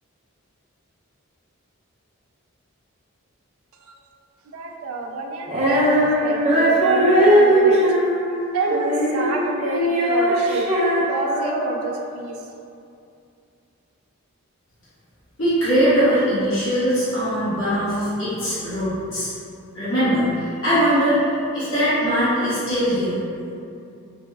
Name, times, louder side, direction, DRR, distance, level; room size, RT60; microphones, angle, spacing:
voice 1, 4.5-7.8 8.5-10.7 10.9-12.4, right 3 dB, 80° right, 2 dB, 0.4 m, -28 dB
Female singing, 5.5-11.9, equal, 30° right, 0.6 m, -19 dB
voice 2, 15.4-19.3 19.7-23.2, equal, 70° left, -14 dB, 1.4 m, -21 dB
4.1 x 2.2 x 3.3 m, 2.6 s
head